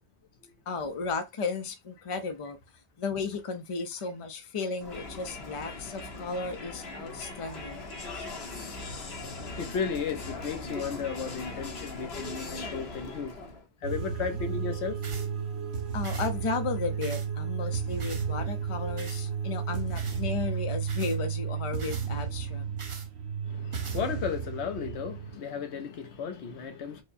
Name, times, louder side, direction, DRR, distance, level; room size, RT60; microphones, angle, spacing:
voice 1, 0.7-2.6 3.0-7.9 15.9-22.6, left 4 dB, 35° left, 0.6 m, -34 dB
Crowd, 4.8-13.7, left 3 dB, 70° left, 1.2 m, -40 dB
voice 2, 9.3-13.5 13.8-15.2 23.4-27.0, left 6 dB, 90° left, 1.0 m, -35 dB
sound 1, 13.8-25.4, right 7 dB, 80° right, 1.1 m, -33 dB
sound 2, 15.0-15.3 16.0-16.3 17.0-17.3 18.0-18.3 19.0-19.2 20.0-20.2 20.9-21.2 21.8-22.1 22.8-23.1 23.7-24.0, right 4 dB, 35° right, 0.5 m, -44 dB
4.6 x 2.1 x 2.6 m
omnidirectional pair, 1.1 m